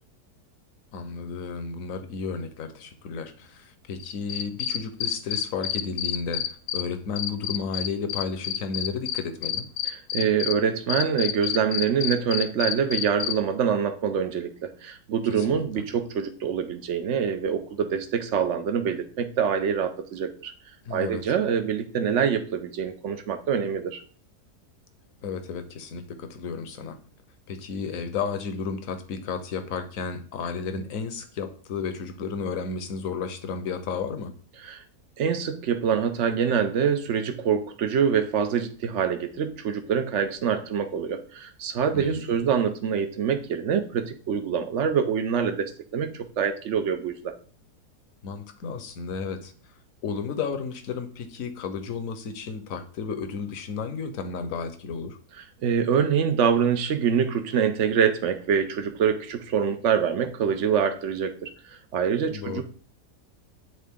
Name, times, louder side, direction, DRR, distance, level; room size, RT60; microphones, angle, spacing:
voice 1, 0.9-9.7 15.4-15.8 20.8-21.2 25.2-27.0 27.5-34.3 41.9-42.4 48.2-49.5 50.0-55.2 62.3-62.6, left 5 dB, 60° left, 8 dB, 1.2 m, -33 dB
Cricket, 4.0-6.8 7.2-10.5 10.9-13.3, left 11 dB, 80° left, 1.1 m, -28 dB
voice 2, 9.8-20.5 20.9-24.0 34.6-34.8 35.2-47.3 55.6-61.5 61.9-62.6, right 7 dB, 60° right, 8 dB, 0.9 m, -25 dB
9.4 x 3.8 x 3.6 m, 0.43 s
omnidirectional pair, 1.7 m